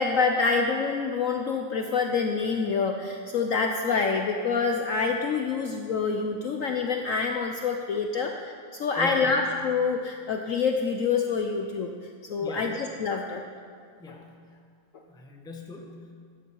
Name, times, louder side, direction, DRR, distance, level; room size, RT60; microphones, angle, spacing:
voice 1, 0.0-11.9 12.3-13.4, left 5 dB, 60° left, 3 dB, 0.9 m, -26 dB
voice 2, 9.0-9.5 12.4-12.7 14.0-14.6 15.1-16.1, left 2 dB, 5° left, 1 dB, 0.7 m, -39 dB
13.5 x 10.0 x 4.6 m, 2.1 s
omnidirectional pair, 1.9 m